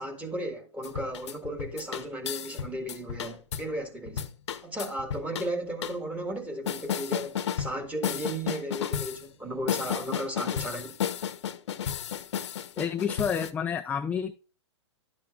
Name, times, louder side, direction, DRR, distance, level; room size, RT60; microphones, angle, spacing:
voice 1, 0.0-4.3 4.6-11.0, right 1 dB, 10° right, 1.9 m, -35 dB
sound 1, 0.8-3.7 4.1-5.5 5.8-5.9 6.7-7.8 8.0-9.2 9.7-13.5, left 8 dB, 70° left, 0.9 m, -32 dB
voice 2, 12.8-14.3, left 7 dB, 10° left, 0.4 m, -29 dB
11.5 x 7.5 x 2.5 m
hypercardioid pair, 125°, 15 cm